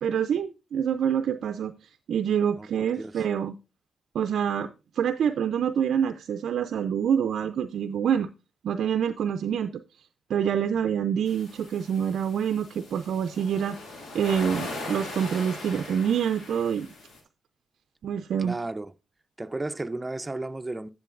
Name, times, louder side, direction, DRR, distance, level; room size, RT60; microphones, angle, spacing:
voice 1, 0.0-1.7 2.1-3.5 4.1-4.7 5.0-8.3 8.6-9.7 10.3-13.8 14.1-16.9 18.0-18.5, right 8 dB, 75° right, 0.4 m, -26 dB
voice 2, 2.6-3.2 18.4-18.9 19.4-20.9, right 2 dB, 25° right, 0.6 m, -34 dB
sound 1, 11.3-17.2, left 2 dB, 80° left, 2.3 m, -40 dB
10.0 x 8.4 x 2.5 m
supercardioid pair, 45°, 0 cm